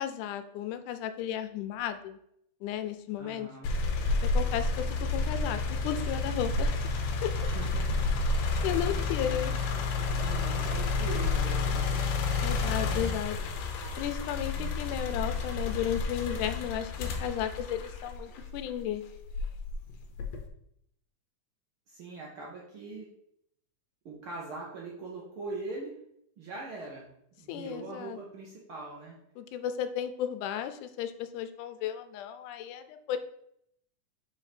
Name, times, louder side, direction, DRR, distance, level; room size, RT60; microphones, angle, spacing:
voice 1, 0.0-2.2 2.6-3.5 4.2-6.9 7.2-7.5 8.6-9.6 12.4-13.4 14.0-19.0 27.5-28.2 29.4-33.2, left 10 dB, 85° left, 10 dB, 2.1 m, -34 dB
voice 2, 3.2-3.7 7.4-8.3 10.1-11.9 14.6-15.1 21.9-23.1 24.0-26.0 26.4-27.1 27.4-29.1, right 3 dB, 65° right, -3 dB, 1.4 m, -42 dB
sound 1, 3.6-18.7 19.3-20.5, left 3 dB, 70° left, 1.8 m, -30 dB
4.7 x 4.2 x 4.9 m, 0.74 s
omnidirectional pair, 3.5 m